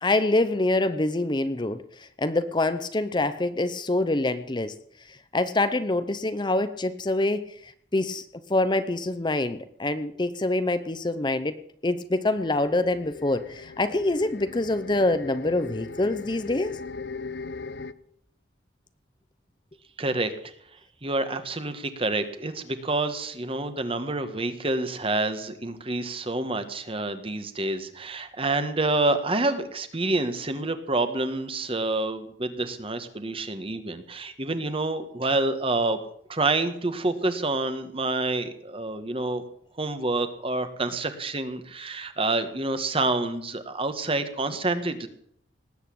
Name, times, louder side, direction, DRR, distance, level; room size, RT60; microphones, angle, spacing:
voice 1, 0.0-1.8 2.2-4.7 5.3-7.4 7.9-8.2 8.5-11.5 11.8-16.7, left 2 dB, 25° left, 11 dB, 0.7 m, -25 dB
sound 1, 12.4-17.9, left 4 dB, 65° left, 0.7 m, -39 dB
voice 2, 20.0-20.3 21.0-36.0 36.3-39.4 39.8-45.1, right 2 dB, 30° right, 10 dB, 1.4 m, -28 dB
19.0 x 8.3 x 8.5 m, 0.67 s
head